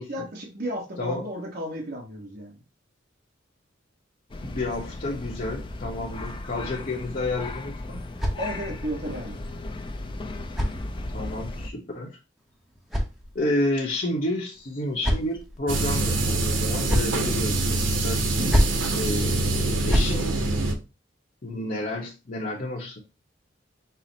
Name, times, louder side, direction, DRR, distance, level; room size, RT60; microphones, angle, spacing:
voice 1, 0.1-2.5 8.4-9.4, equal, 55° right, -1 dB, 1.1 m, -33 dB
sound 1, 4.3-11.7, left 2 dB, 25° left, 0.4 m, -36 dB
voice 2, 4.4-8.0 11.1-12.2 13.3-20.4 21.4-23.0, left 1 dB, 45° left, -4 dB, 0.9 m, -30 dB
sound 2, 7.8-8.9 9.9-11.4 12.4-13.7 14.5-15.6 16.5-17.2 18.2-18.9 19.6-20.2, equal, ahead, 0.7 m, -29 dB
sound 3, 15.7-20.7, right 2 dB, 85° right, 0.8 m, -25 dB
5.6 x 2.0 x 3.9 m, 0.28 s
head